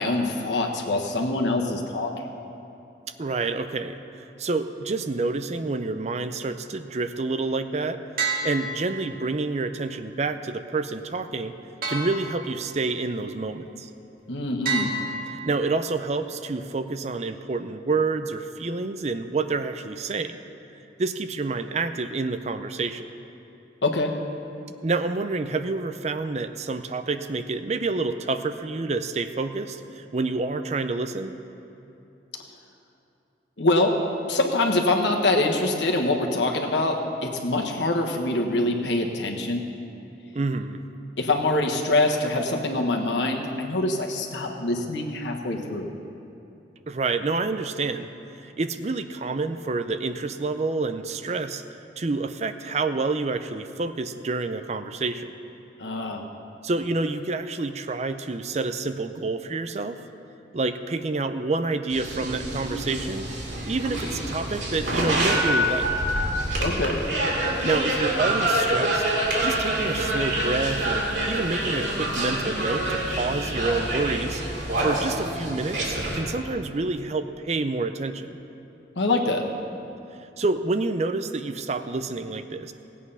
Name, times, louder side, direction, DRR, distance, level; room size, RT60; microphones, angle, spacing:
voice 1, 0.0-2.1 14.3-14.9 23.8-24.1 33.6-33.9 34.3-36.9 37.2-39.6 41.2-45.9 55.8-56.2 66.6-67.0 79.0-79.4, left 2 dB, 85° left, 2 dB, 1.4 m, -24 dB
voice 2, 3.2-8.0 8.4-11.5 11.9-13.9 15.3-20.4 21.0-23.1 24.8-31.3 40.3-40.8 46.9-48.1 48.4-51.6 52.0-55.3 56.6-60.0 60.5-63.3 63.6-65.9 67.5-69.0 69.4-74.4 74.8-78.4 80.4-82.7, right 3 dB, 40° right, 9 dB, 0.5 m, -28 dB
sound 1, 8.2-9.4 11.8-12.9 14.7-15.9, right 3 dB, 55° right, 1.7 m, -30 dB
sound 2, 61.9-76.2, right 1 dB, 90° right, 2.6 m, -26 dB
17.0 x 8.4 x 5.6 m, 2.9 s
head